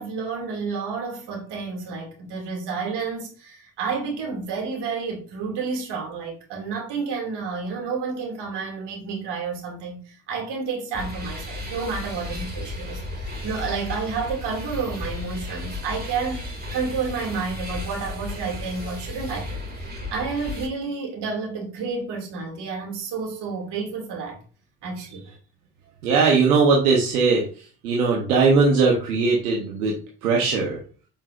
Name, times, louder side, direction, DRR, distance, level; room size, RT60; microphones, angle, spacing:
voice 1, 0.0-16.4 16.7-19.7 20.1-24.4 24.8-25.2, right 5 dB, 70° right, 2.5 m, -30 dB
sound 1, 10.9-20.7, left 2 dB, 20° right, 2.5 m, -34 dB
voice 2, 26.0-29.9 30.2-30.8, right 4 dB, 90° right, 1.0 m, -20 dB
7.0 x 5.4 x 2.5 m
hypercardioid pair, 45°, 43 cm